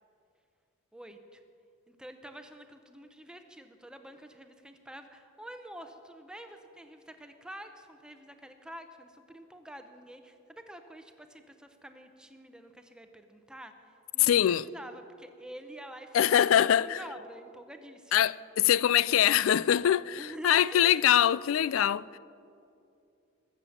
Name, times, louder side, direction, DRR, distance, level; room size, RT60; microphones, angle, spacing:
voice 1, 0.9-1.4 1.9-13.7 14.1-18.4 20.1-21.0, right 1 dB, 5° right, 0.7 m, -48 dB
voice 2, 14.2-14.7 16.1-17.0 18.1-22.2, left 10 dB, 85° left, 0.3 m, -23 dB
20.5 x 7.3 x 7.2 m
head